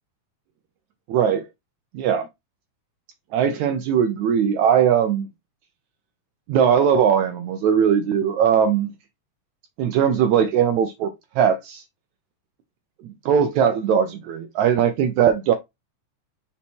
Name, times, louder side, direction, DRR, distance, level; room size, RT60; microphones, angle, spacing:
voice 1, 1.1-1.5 1.9-2.3 3.3-5.3 6.5-8.9 9.8-11.1 11.4-11.8 13.3-15.5, right 8 dB, 75° right, 2.0 m, -19 dB
5.6 x 4.2 x 4.5 m
omnidirectional pair, 3.5 m